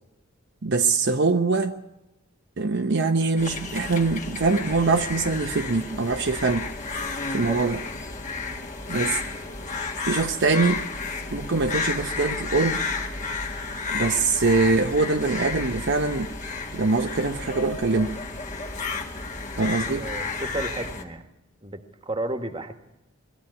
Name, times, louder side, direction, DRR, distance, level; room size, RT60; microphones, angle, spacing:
voice 1, 0.6-1.7 2.6-6.7 7.3-7.8 8.9-9.2 10.0-10.8 11.3-12.8 13.9-16.3 16.7-18.2 19.6-20.1, right 3 dB, 55° right, 0.8 m, -23 dB
sound 1, 3.4-21.0, left 4 dB, 35° left, 1.9 m, -32 dB
voice 2, 7.4-7.8 19.8-21.2 21.6-22.8, right 2 dB, 25° right, 1.4 m, -33 dB
20.0 x 13.5 x 9.6 m
head